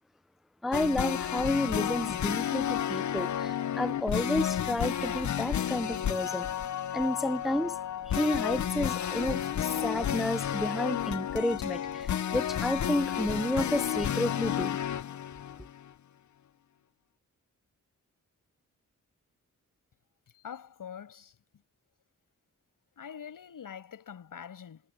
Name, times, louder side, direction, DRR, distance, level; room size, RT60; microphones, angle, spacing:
voice 1, 0.6-6.5 6.9-7.8 8.1-14.8, left 1 dB, ahead, 0.4 m, -31 dB
sound 1, 0.7-15.9, left 10 dB, 65° left, 0.7 m, -31 dB
voice 2, 20.3-21.3 23.0-24.8, left 8 dB, 90° left, 7.7 m, -44 dB
wide cardioid pair, 165°, 32 cm